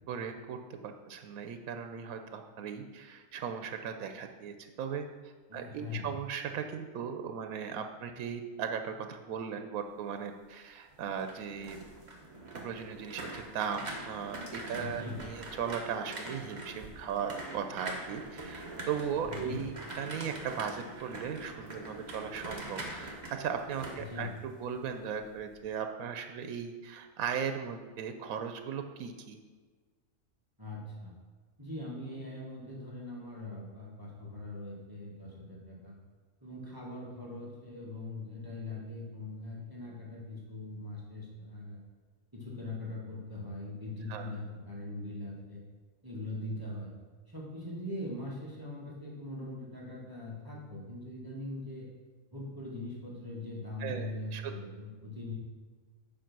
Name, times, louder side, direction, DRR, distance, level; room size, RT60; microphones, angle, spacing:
voice 1, 0.1-5.0 5.5-11.8 12.5-29.4 44.1-44.3 53.8-54.5, right 7 dB, 85° right, 7 dB, 1.1 m, -37 dB
voice 2, 5.5-6.1 14.8-15.2 19.3-19.6 24.0-24.3 30.6-31.1 31.6-35.9 36.4-41.8 42.3-45.6 46.0-46.9 47.3-51.9 52.3-55.3, left 2 dB, 15° right, -4 dB, 1.5 m, -41 dB
sound 1, 10.9-24.9 25.2-25.6, right 1 dB, 35° right, 1.1 m, -43 dB
7.6 x 5.1 x 6.0 m, 1.4 s
omnidirectional pair, 1.4 m